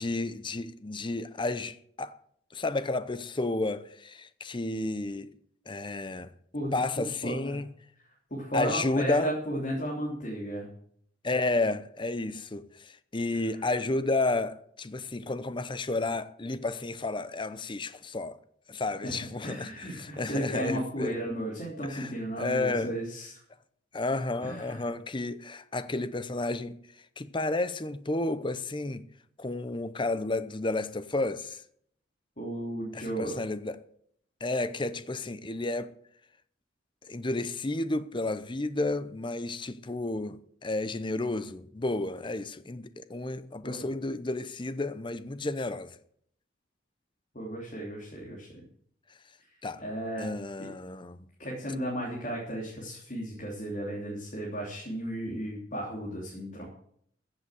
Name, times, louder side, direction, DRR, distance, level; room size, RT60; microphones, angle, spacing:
voice 1, 0.0-2.2 2.5-5.3 5.7-6.3 6.7-7.7 8.5-9.3 11.2-18.4 18.7-21.2 21.9-22.1 22.4-22.9 23.9-26.8 27.2-29.0 29.4-31.6 32.9-33.8 34.4-36.0 37.1-46.0 49.6-49.8 50.2-51.2, left 2 dB, 25° left, 0.7 m, -31 dB
voice 2, 7.2-7.6 8.3-10.7 13.3-13.4 19.0-23.3 24.4-24.8 32.4-33.4 43.6-43.8 47.3-48.6 49.8-50.3 51.4-56.7, right 1 dB, 45° left, 3.4 m, -34 dB
15.0 x 7.9 x 7.6 m
head